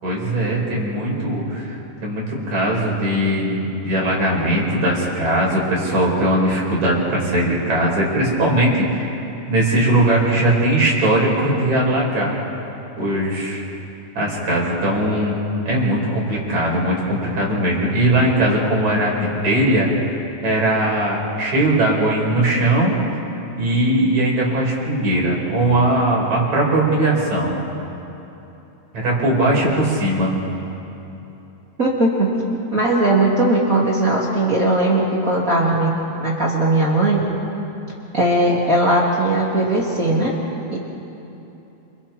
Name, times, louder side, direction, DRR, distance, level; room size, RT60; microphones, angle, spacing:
voice 1, 0.0-9.1 9.5-12.3 13.0-13.6 14.1-19.9 20.4-22.9 23.6-27.5 28.9-30.4, right 1 dB, 65° right, -4 dB, 6.7 m, -19 dB
voice 2, 31.8-32.3 32.7-35.9 36.2-37.2 38.1-40.3 40.7-40.8, right 2 dB, 25° right, -4 dB, 3.0 m, -18 dB
28.5 x 28.5 x 4.5 m, 3.0 s
omnidirectional pair, 3.5 m